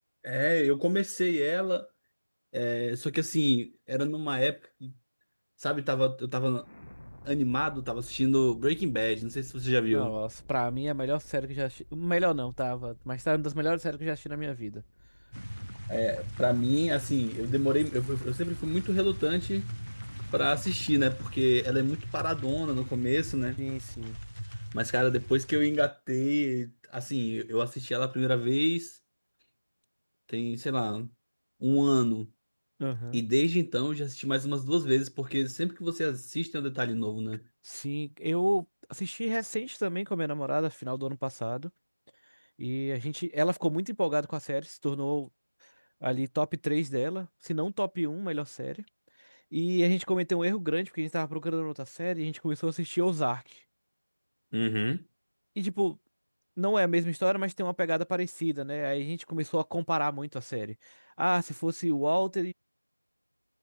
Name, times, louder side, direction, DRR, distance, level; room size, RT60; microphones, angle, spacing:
voice 1, 0.2-1.9 2.5-4.9 5.6-6.6 7.2-10.2 15.9-19.7 20.3-23.6 24.7-28.9 30.3-31.1 31.6-32.3 33.1-37.4 54.5-55.0, equal, 70° left, 2.6 m, -28 dB
sound 1, 6.5-17.6, left 1 dB, 35° left, 7.1 m, -52 dB
voice 2, 9.9-14.8 23.6-24.2 32.8-33.2 37.6-41.7 42.6-45.3 46.0-48.8 49.5-53.6 55.6-56.0 56.6-62.5, equal, 55° right, 0.9 m, -30 dB
sound 2, 15.3-25.9, equal, 70° right, 2.9 m, -40 dB
figure-of-eight pair, 175°, 0 cm